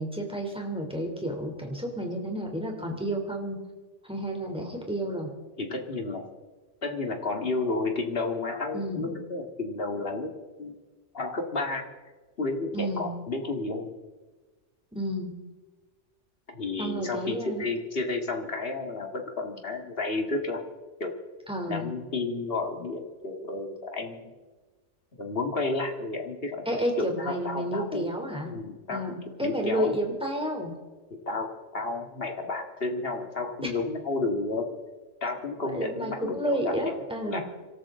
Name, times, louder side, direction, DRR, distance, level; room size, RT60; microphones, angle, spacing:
voice 1, 0.0-3.6 4.0-5.3 8.7-9.1 12.7-13.1 14.9-15.3 16.8-17.7 21.5-21.9 26.6-28.5 28.9-30.7 33.6-33.7 35.7-37.4, right 1 dB, 5° right, 1 dB, 3.2 m, -31 dB
voice 2, 5.6-6.3 6.8-10.3 10.6-10.7 11.1-11.8 12.4-13.9 16.5-20.6 21.0-21.2 21.7-24.3 25.2-26.6 27.2-28.1 28.5-29.2 29.4-30.0 31.3-31.5 31.7-34.7 35.2-36.7 37.2-37.4, left 3 dB, 50° left, 3 dB, 2.2 m, -31 dB
25.5 x 13.0 x 3.8 m, 1.3 s
omnidirectional pair, 1.3 m